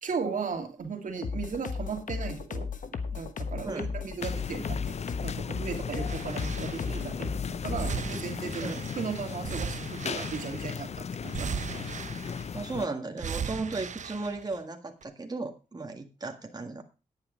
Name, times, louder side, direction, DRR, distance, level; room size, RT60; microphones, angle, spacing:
voice 1, 0.0-2.7 3.1-4.9 5.2-11.9 13.5-13.7, right 5 dB, 85° right, 4 dB, 2.3 m, -36 dB
sound 1, 1.2-8.0, left 5 dB, 85° left, 1.2 m, -35 dB
sound 2, 4.2-12.9, left 6 dB, 55° left, 0.5 m, -37 dB
sound 3, 6.1-7.1 7.7-10.8 11.3-12.7 13.2-14.6 15.0-15.1, right 7 dB, 70° right, 0.6 m, -38 dB
voice 2, 12.5-16.8, right 3 dB, 30° right, 4 dB, 1.8 m, -35 dB
9.8 x 9.0 x 5.1 m, 0.31 s
wide cardioid pair, 90°, 13 cm